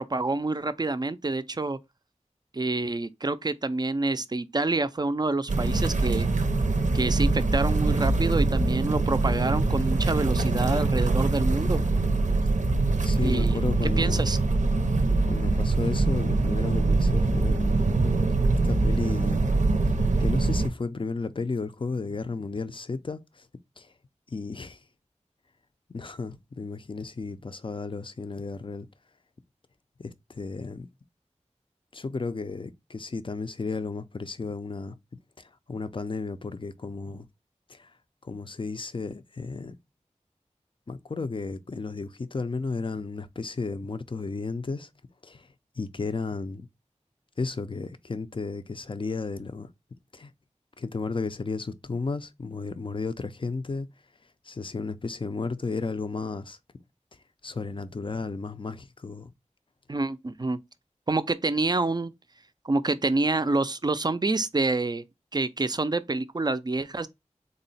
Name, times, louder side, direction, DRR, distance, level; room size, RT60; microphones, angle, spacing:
voice 1, 0.0-1.8 2.5-6.3 6.9-11.8 13.2-14.4 59.9-60.6 61.1-62.1 62.6-65.0 65.3-67.1, right 2 dB, 35° right, 0.4 m, -27 dB
sound 1, 5.5-20.7, right 3 dB, 85° right, 0.5 m, -23 dB
voice 2, 13.0-14.3 15.3-17.8 18.6-19.4 20.2-23.5 23.8-23.9 24.3-24.8 25.9-28.9 30.0-30.9 31.9-35.0 35.4-37.3 37.7-37.9 38.2-39.7 40.9-44.9 45.2-45.5 45.8-46.7 47.4-49.7 50.1-50.3 50.8-53.9 54.5-56.6 57.4-59.3, left 4 dB, 45° left, 0.4 m, -33 dB
3.7 x 2.1 x 3.9 m
wide cardioid pair, 55°, 12 cm